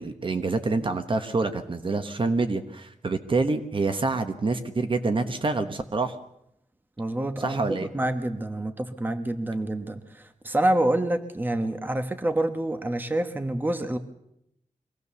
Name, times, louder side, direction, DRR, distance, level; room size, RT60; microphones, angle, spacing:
voice 1, 0.0-6.1 7.4-7.9, right 3 dB, 40° right, 8 dB, 1.2 m, -27 dB
voice 2, 7.0-14.0, right 1 dB, 15° right, 8 dB, 1.2 m, -27 dB
23.5 x 17.5 x 7.0 m, 0.78 s
wide cardioid pair, 170°, 13 cm